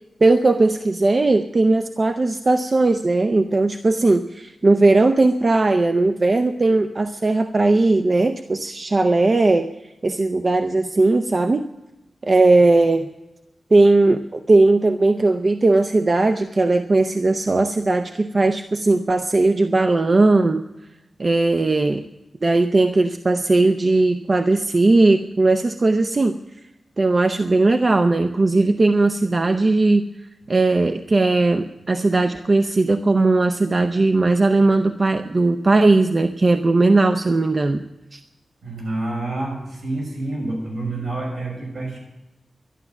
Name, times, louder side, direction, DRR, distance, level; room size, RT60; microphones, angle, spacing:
voice 1, 0.2-9.7 10.0-11.7 12.2-13.1 13.7-20.6 21.2-22.1 22.4-26.4 27.0-30.1 30.5-37.8 38.1-38.2, right 2 dB, 40° right, 8 dB, 0.6 m, -18 dB
voice 2, 38.6-42.0, right 2 dB, 70° right, 0 dB, 6.2 m, -28 dB
12.0 x 12.0 x 6.9 m, 0.98 s
wide cardioid pair, 105°, 0 cm